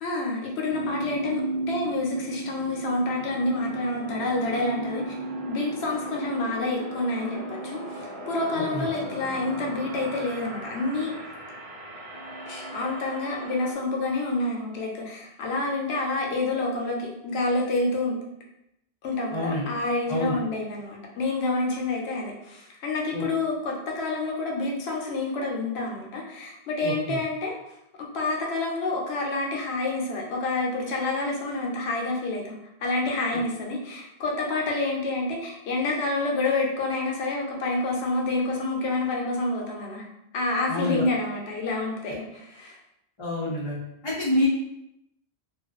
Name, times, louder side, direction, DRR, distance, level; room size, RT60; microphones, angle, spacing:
voice 1, 0.0-5.1 5.5-11.1 12.5-18.2 19.0-27.5 28.0-32.5 32.8-40.1 40.3-42.8, left 2 dB, 80° left, -1 dB, 0.9 m, -28 dB
sound 1, 0.7-13.7, right 2 dB, 75° right, 0.9 m, -36 dB
voice 2, 19.3-19.6 20.1-20.4 23.1-23.2 26.8-27.2 40.7-41.1 43.2-43.8 44.0-44.5, left 1 dB, 40° left, -7 dB, 0.4 m, -27 dB
2.4 x 2.2 x 2.3 m, 0.82 s
omnidirectional pair, 1.1 m